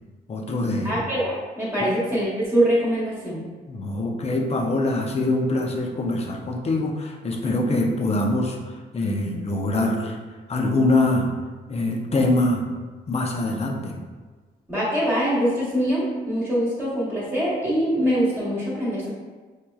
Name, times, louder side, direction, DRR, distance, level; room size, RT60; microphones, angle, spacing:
voice 1, 0.3-1.0 1.8-1.9 3.7-10.2 10.5-11.3 11.7-12.7 13.1-14.0, left 2 dB, 35° left, 1 dB, 0.6 m, -24 dB
voice 2, 0.8-3.4 14.7-19.1, equal, 15° right, -9 dB, 1.3 m, -23 dB
4.6 x 2.8 x 2.3 m, 1.4 s
cardioid pair, 100°, 18 cm